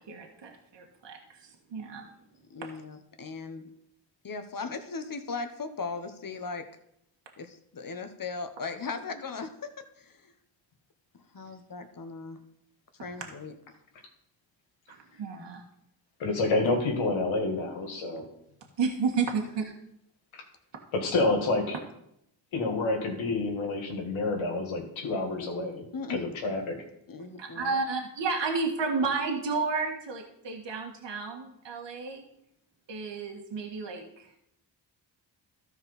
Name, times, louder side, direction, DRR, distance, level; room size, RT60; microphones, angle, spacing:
voice 1, 0.0-2.1 15.2-15.6 18.8-19.7 27.4-32.2 32.9-34.3, right 4 dB, 65° right, 1 dB, 1.8 m, -31 dB
voice 2, 2.5-3.7 4.2-6.6 7.4-10.3 11.3-12.4 13.0-13.6 25.9-26.2 27.1-27.8, left 4 dB, 45° left, 8 dB, 1.4 m, -38 dB
voice 3, 16.2-18.2 20.3-20.4 20.9-21.8 22.5-25.8 26.1-26.8, left 2 dB, 85° left, 2 dB, 2.2 m, -28 dB
13.0 x 4.7 x 5.5 m, 0.77 s
supercardioid pair, 55°, 46 cm